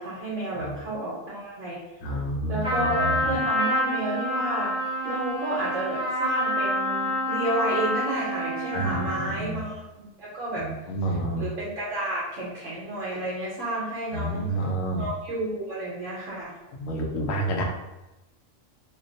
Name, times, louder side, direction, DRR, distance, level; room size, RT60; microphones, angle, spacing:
voice 1, 0.0-1.8 2.5-4.7 5.0-10.7 11.1-14.6 15.0-16.5, right 1 dB, 75° right, -8 dB, 1.2 m, -31 dB
voice 2, 2.0-3.4 8.7-9.6 10.6-11.5 14.1-15.1 16.7-17.6, right 1 dB, 85° left, 0 dB, 1.0 m, -29 dB
Trumpet, 2.6-9.3, equal, 5° right, 0.5 m, -27 dB
2.9 x 2.2 x 3.8 m, 0.98 s
omnidirectional pair, 1.3 m